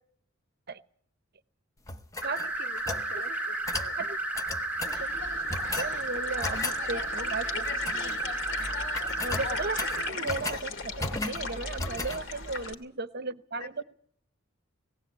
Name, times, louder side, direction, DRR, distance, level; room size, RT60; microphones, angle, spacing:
sound 1, 1.9-3.1 3.7-3.9 4.3-5.0 5.5-5.9 6.4-6.8 7.6-8.2 8.5-8.7 8.9-10.6 11.0-11.4 11.8-12.2, left 2 dB, 15° left, 0.9 m, -35 dB
sound 2, 2.2-10.1, right 2 dB, 5° right, 1.1 m, -33 dB
voice 1, 2.4-4.0 10.0-10.4 13.6-13.8, left 2 dB, 85° left, 5 dB, 2.5 m, -46 dB
sound 3, 4.9-12.7, left 4 dB, 60° left, 2.3 m, -37 dB
voice 2, 5.8-7.8 9.2-13.8, right 3 dB, 45° right, 14 dB, 0.9 m, -36 dB
18.5 x 17.5 x 8.3 m, 0.63 s
head